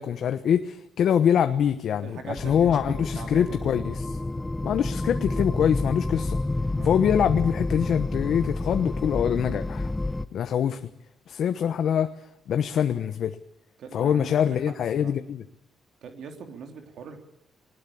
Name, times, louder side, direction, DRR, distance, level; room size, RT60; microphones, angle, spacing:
voice 1, 0.0-4.2 4.6-6.4 6.8-9.9 10.3-10.9 11.3-12.1 12.5-13.4 13.9-15.4, left 8 dB, 65° left, 9 dB, 1.1 m, -24 dB
voice 2, 2.0-3.7 6.7-7.0 13.8-14.6 15.0-15.1 16.0-17.2, right 5 dB, 70° right, 5 dB, 3.2 m, -41 dB
sound 1, 2.4-10.3, left 2 dB, 15° left, 0.9 m, -29 dB
20.5 x 19.5 x 8.6 m, 0.76 s
cardioid pair, 90°, 0 cm